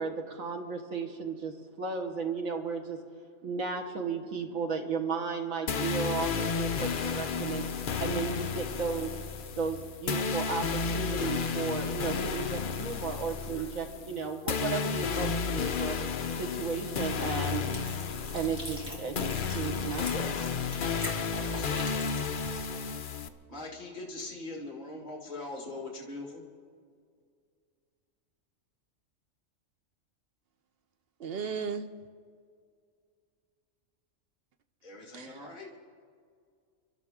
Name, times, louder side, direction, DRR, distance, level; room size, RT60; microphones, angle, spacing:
voice 1, 0.0-3.0 3.4-7.6 8.0-9.1 9.6-16.0 16.4-17.7 18.3-20.1, right 5 dB, 90° right, 4 dB, 1.8 m, -34 dB
sound 1, 5.7-23.3, left 5 dB, 50° left, 0.7 m, -32 dB
sound 2, 17.7-22.7, equal, 5° right, 3.2 m, -43 dB
voice 2, 21.4-21.9 23.5-26.5 34.8-35.7, left 2 dB, 35° left, -1 dB, 1.9 m, -42 dB
voice 3, 31.2-31.9 35.1-35.4, right 6 dB, 55° right, 10 dB, 0.8 m, -35 dB
28.5 x 12.0 x 3.6 m, 2.1 s
omnidirectional pair, 1.4 m